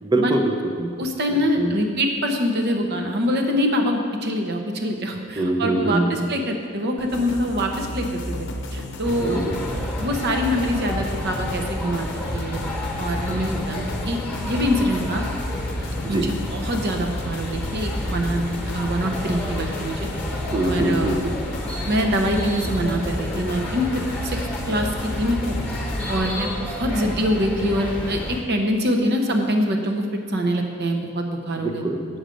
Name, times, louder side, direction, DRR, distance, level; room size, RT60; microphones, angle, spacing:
voice 1, 0.0-1.0 1.3-1.7 5.4-6.3 9.2-9.6 16.0-16.3 20.5-21.3 31.6-32.2, right 1 dB, 20° right, 4 dB, 0.6 m, -24 dB
voice 2, 1.0-9.4 10.0-12.6 13.0-14.2 14.4-15.2 16.1-20.1 20.6-21.2 21.8-23.9 24.2-24.4 24.7-25.6 26.1-31.8, equal, 50° right, 3 dB, 0.8 m, -24 dB
sound 1, 7.0-26.2, left 1 dB, 55° left, 0.7 m, -33 dB
sound 2, 9.0-28.4, left 1 dB, 5° left, 1.2 m, -30 dB
7.9 x 6.4 x 5.2 m, 2.1 s
head